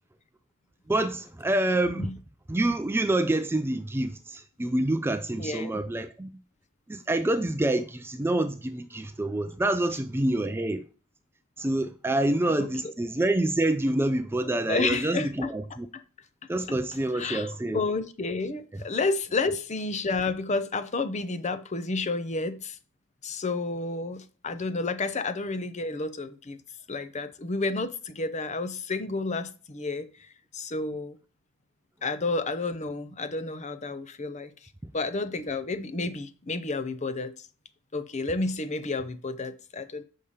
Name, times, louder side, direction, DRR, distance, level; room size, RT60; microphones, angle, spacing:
voice 1, 0.9-2.1 2.5-6.3 6.9-10.8 11.6-15.9 16.5-17.8, right 1 dB, 10° right, 0.3 m, -27 dB
voice 2, 5.4-5.7 12.2-12.9 14.7-15.5 17.1-22.8 23.2-26.6 26.9-31.2 32.0-34.5 34.9-37.5 37.9-40.0, left 3 dB, 30° left, 0.6 m, -31 dB
7.1 x 5.5 x 4.9 m
head